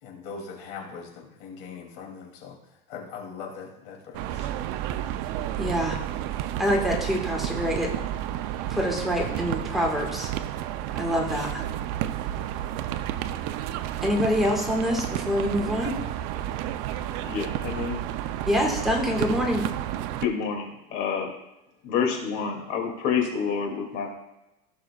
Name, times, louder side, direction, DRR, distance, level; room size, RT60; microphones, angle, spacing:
voice 1, 0.0-4.5, left 5 dB, 85° left, 0 dB, 2.8 m, -41 dB
sound 1, 4.1-20.3, right 12 dB, 65° right, 0.6 m, -31 dB
voice 2, 5.6-6.0 6.6-7.9 8.7-10.3 10.9-11.6 14.0-15.9 18.5-19.7, equal, ahead, -1 dB, 1.7 m, -26 dB
voice 3, 17.2-18.0 20.2-21.3 21.8-24.1, left 6 dB, 60° left, 2 dB, 2.5 m, -28 dB
16.0 x 6.2 x 2.4 m, 0.93 s
cardioid pair, 155°, 21 cm